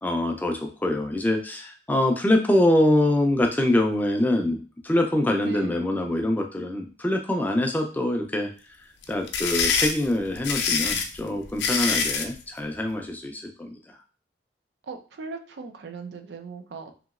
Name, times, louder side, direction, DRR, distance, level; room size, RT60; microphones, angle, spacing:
voice 1, 0.0-8.8 9.1-14.0, left 1 dB, 10° left, 3 dB, 0.3 m, -24 dB
voice 2, 5.5-5.8 14.8-17.0, right 4 dB, 75° right, 6 dB, 0.4 m, -38 dB
sound 1, 9.0-12.3, left 6 dB, 75° left, 0.4 m, -25 dB
2.9 x 2.9 x 2.4 m, 0.38 s
head